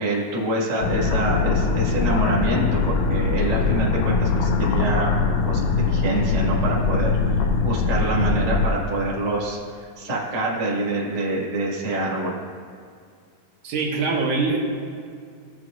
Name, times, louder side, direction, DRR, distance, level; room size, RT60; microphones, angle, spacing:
voice 1, 0.0-5.1 5.5-12.3, right 2 dB, 40° right, -6 dB, 0.5 m, -26 dB
sound 1, 0.8-8.7, left 4 dB, 80° left, 1.7 m, -22 dB
voice 2, 13.6-14.6, right 4 dB, 65° right, -2 dB, 2.5 m, -23 dB
19.0 x 7.7 x 2.5 m, 2.2 s
omnidirectional pair, 4.3 m